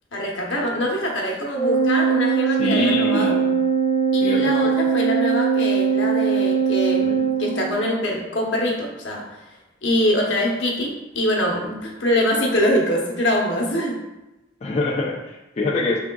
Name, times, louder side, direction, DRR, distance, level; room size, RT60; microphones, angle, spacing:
voice 1, 0.1-3.3 4.1-9.5 9.8-14.0, left 1 dB, 75° left, -2 dB, 0.9 m, -24 dB
Organ, 1.6-8.1, right 6 dB, 70° right, 0.7 m, -21 dB
voice 2, 2.6-3.5 4.2-4.8 14.6-16.0, left 2 dB, 35° left, -3 dB, 0.4 m, -25 dB
4.8 x 3.5 x 2.2 m, 1.0 s
head